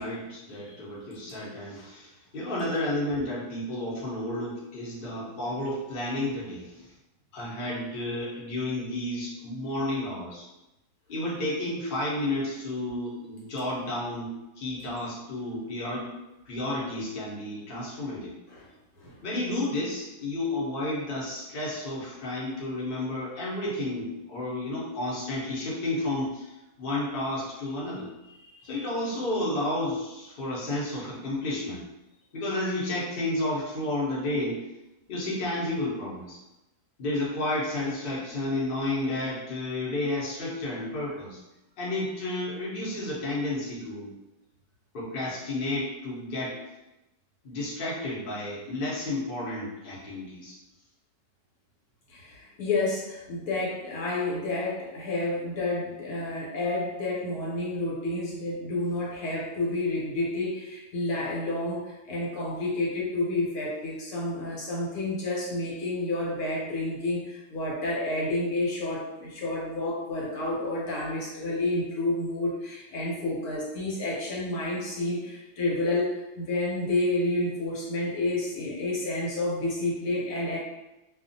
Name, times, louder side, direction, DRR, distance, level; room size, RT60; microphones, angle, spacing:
voice 1, 0.0-6.9 7.3-10.5 11.1-16.1 16.4-18.3 19.2-28.1 28.6-31.8 32.3-34.7 35.1-36.4 37.0-41.4 41.8-44.1 44.9-46.6 47.4-50.6, left 1 dB, 45° left, -6 dB, 0.8 m, -31 dB
voice 2, 28.4-28.7 52.1-80.6, left 2 dB, 80° left, -5 dB, 1.2 m, -30 dB
2.4 x 2.3 x 2.6 m, 0.98 s
omnidirectional pair, 1.6 m